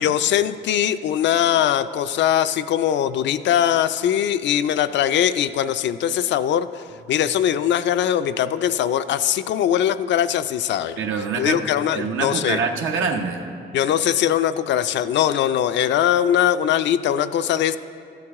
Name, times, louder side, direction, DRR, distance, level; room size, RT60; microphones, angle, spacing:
voice 1, 0.0-11.0 11.3-12.6 13.7-17.8, left 10 dB, 65° left, 12 dB, 0.4 m, -21 dB
voice 2, 11.0-11.6 11.9-13.5, right 5 dB, 90° right, 3 dB, 1.0 m, -25 dB
14.0 x 7.8 x 3.6 m, 2.4 s
cardioid pair, 90°, 20 cm